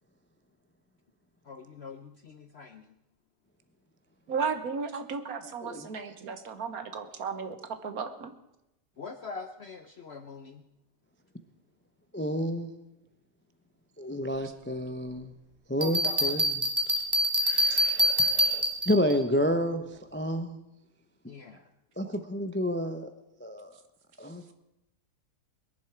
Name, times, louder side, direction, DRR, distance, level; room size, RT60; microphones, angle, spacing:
voice 1, 1.5-2.8 9.0-10.6 15.8-16.5 21.3-21.6, left 4 dB, 55° left, 9 dB, 0.7 m, -43 dB
voice 2, 4.3-7.6 7.8-8.3 17.7-17.8, right 5 dB, 65° right, 9 dB, 1.5 m, -34 dB
voice 3, 12.1-12.7 14.0-15.3 15.7-16.7 17.4-20.6 22.0-23.1 23.4-23.7 24.2-24.5, equal, 15° left, 8 dB, 0.5 m, -30 dB
Bell, 15.8-19.2, equal, 15° right, 1.5 m, -25 dB
21.0 x 11.0 x 4.6 m, 0.89 s
omnidirectional pair, 1.8 m